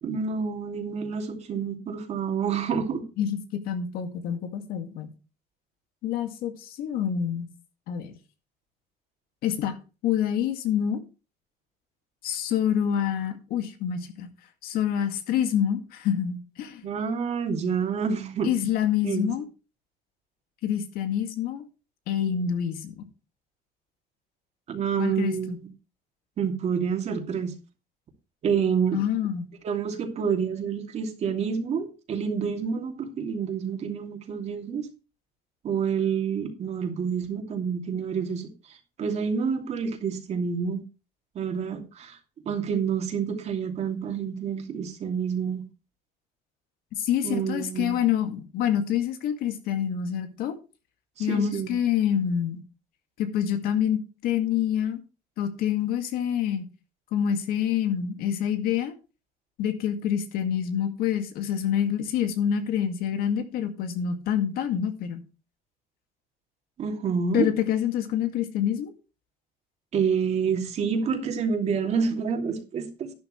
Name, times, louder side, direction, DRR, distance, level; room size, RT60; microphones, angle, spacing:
voice 1, 0.0-3.0 16.8-18.5 19.0-19.3 24.7-25.7 26.4-27.5 28.4-29.0 29.6-34.9 35.6-38.5 39.0-40.8 41.3-42.2 42.4-45.6 47.2-48.0 51.2-51.7 66.8-67.5 69.9-73.1, right 6 dB, 45° right, 4 dB, 2.8 m, -28 dB
voice 2, 3.6-5.1 6.0-7.5 7.9-8.1 9.4-9.8 10.0-11.0 12.2-14.3 14.6-16.9 18.4-19.5 20.6-21.6 22.1-23.0 25.0-25.6 28.9-29.5 47.0-50.6 51.2-52.6 53.2-55.0 55.4-56.7 57.1-58.9 59.6-65.2 67.3-68.9, left 9 dB, 70° left, 8 dB, 2.1 m, -27 dB
12.0 x 10.5 x 3.2 m, 0.31 s
cardioid pair, 140°, 16 cm